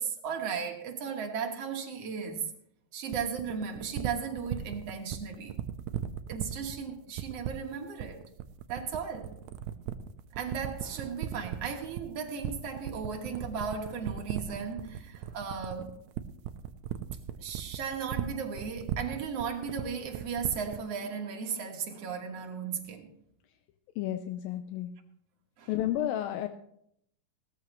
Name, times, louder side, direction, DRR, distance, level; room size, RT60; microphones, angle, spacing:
voice 1, 0.0-2.5 2.9-5.6 6.3-8.2 8.7-9.3 10.3-16.0 17.4-23.1 25.6-25.7, right 6 dB, 55° right, 3 dB, 1.9 m, -36 dB
sound 1, 3.1-20.9, right 11 dB, 85° right, 1.7 m, -36 dB
voice 2, 24.0-24.9 25.7-26.5, left 12 dB, 85° left, 8 dB, 2.4 m, -31 dB
17.5 x 13.5 x 3.1 m, 0.71 s
omnidirectional pair, 4.1 m